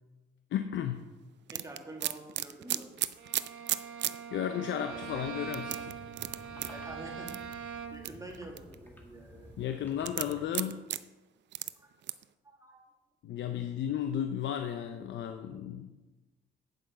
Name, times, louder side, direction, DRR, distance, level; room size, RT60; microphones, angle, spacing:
voice 1, 0.5-1.0 4.3-5.9 9.6-10.8 13.2-15.9, left 9 dB, 70° left, 7 dB, 0.6 m, -34 dB
voice 2, 1.5-2.9 6.7-9.5 11.8-11.9 12.4-12.8, right 1 dB, 15° right, 0 dB, 2.1 m, -47 dB
sound 1, 1.5-4.2 4.6-4.7 5.5-6.7 7.3-7.5 8.0-8.8 10.0-11.0 11.5-11.7 12.0-12.2, right 13 dB, 65° right, 0.5 m, -33 dB
Bowed string instrument, 3.2-8.2, right 6 dB, 85° right, 1.3 m, -42 dB
sound 2, 4.9-10.4, equal, 10° left, 1.9 m, -52 dB
8.4 x 7.5 x 5.0 m, 1.1 s
cardioid pair, 90°, 20 cm